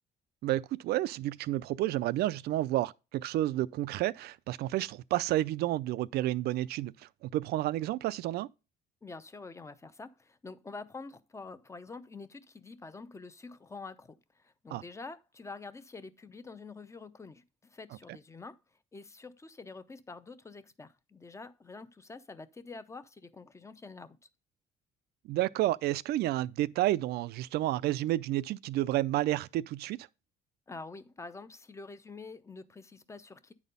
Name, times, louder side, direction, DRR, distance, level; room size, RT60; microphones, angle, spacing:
voice 1, 0.4-6.9 7.2-8.5 14.7-14.8 25.2-30.1, right 15 dB, 70° right, 0.4 m, -30 dB
voice 2, 9.0-18.6 18.9-24.2 30.7-33.5, left 3 dB, 15° left, 0.6 m, -47 dB
9.2 x 4.2 x 5.3 m
cardioid pair, 110°, 17 cm